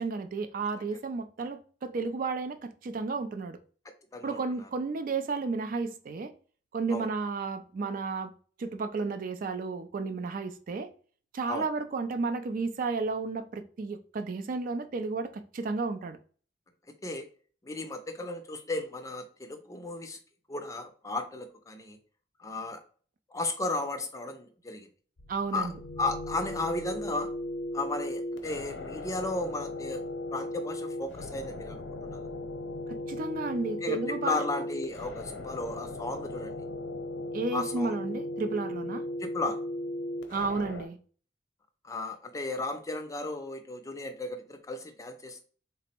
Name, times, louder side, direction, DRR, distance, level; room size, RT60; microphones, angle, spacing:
voice 1, 0.0-3.6 4.2-6.3 6.7-8.3 8.6-10.9 11.3-16.2 25.3-25.7 32.9-34.6 37.3-39.0 40.3-41.0, right 4 dB, 50° right, 0.4 m, -32 dB
voice 2, 17.6-20.2 20.5-22.0 22.4-22.8 23.3-24.9 25.5-25.7 26.0-27.3 27.7-30.0 30.3-32.2 33.8-36.6 37.5-38.0 39.2-39.6 41.8-45.4, left 2 dB, 20° left, 0.4 m, -34 dB
sound 1, 25.2-40.8, left 1 dB, 80° left, 0.7 m, -37 dB
3.4 x 2.0 x 4.3 m
head